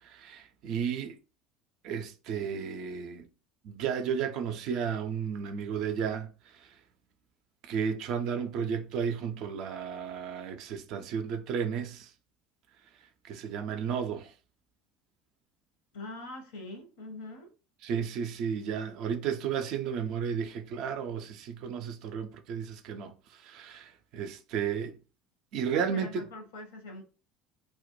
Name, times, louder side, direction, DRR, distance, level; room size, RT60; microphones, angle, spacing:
voice 1, 0.0-1.1 1.8-3.3 3.6-6.7 7.6-12.1 13.2-14.3 17.8-25.0 25.5-26.3, right 7 dB, 55° right, 0.3 m, -33 dB
voice 2, 15.9-17.5 25.7-27.0, left 2 dB, 65° left, 0.6 m, -43 dB
2.1 x 2.1 x 2.9 m
figure-of-eight pair, 65°, 0 cm